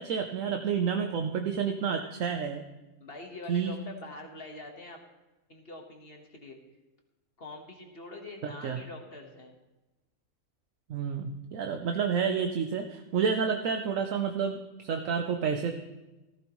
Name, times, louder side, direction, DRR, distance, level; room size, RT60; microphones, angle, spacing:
voice 1, 0.0-2.6 3.5-3.7 8.6-8.8 10.9-15.8, right 6 dB, 70° right, 5 dB, 1.1 m, -29 dB
voice 2, 3.0-5.0 5.5-6.6 7.4-9.6, left 2 dB, 45° left, 2 dB, 1.6 m, -44 dB
15.0 x 14.5 x 3.1 m, 1.1 s
omnidirectional pair, 1.5 m